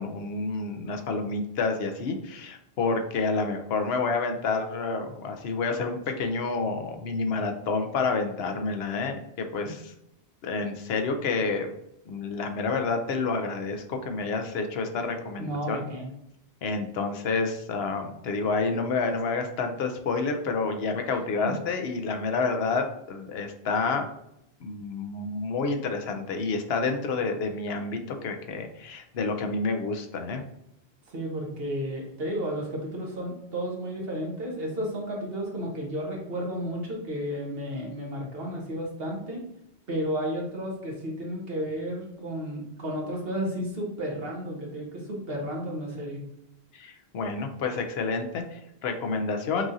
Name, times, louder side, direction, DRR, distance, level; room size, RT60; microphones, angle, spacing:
voice 1, 0.0-9.9 10.4-11.7 12.1-15.8 16.6-24.1 24.6-30.4 46.7-49.7, left 4 dB, 75° left, 5 dB, 0.9 m, -29 dB
voice 2, 15.4-16.1 21.4-21.5 31.1-39.4 39.9-46.2, equal, 65° right, -2 dB, 1.4 m, -32 dB
6.0 x 2.5 x 2.7 m, 0.81 s
omnidirectional pair, 1.1 m